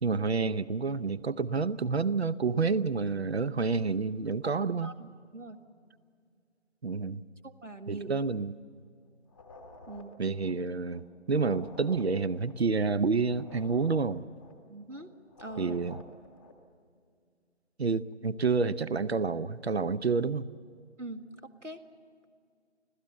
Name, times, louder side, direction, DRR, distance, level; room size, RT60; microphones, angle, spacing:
voice 1, 0.0-4.9 6.8-7.2 7.9-8.5 10.2-14.2 15.6-16.0 17.8-20.5, right 4 dB, 60° right, 18 dB, 0.8 m, -29 dB
voice 2, 4.8-5.6 7.4-8.2 9.9-10.2 14.7-15.1 15.4-15.8 21.0-21.3 21.6-21.8, right 2 dB, 85° right, 8 dB, 2.0 m, -42 dB
sound 1, 9.3-16.6, left 2 dB, 10° left, 1.0 m, -51 dB
25.5 x 16.5 x 8.1 m, 2.2 s
figure-of-eight pair, 155°, 36 cm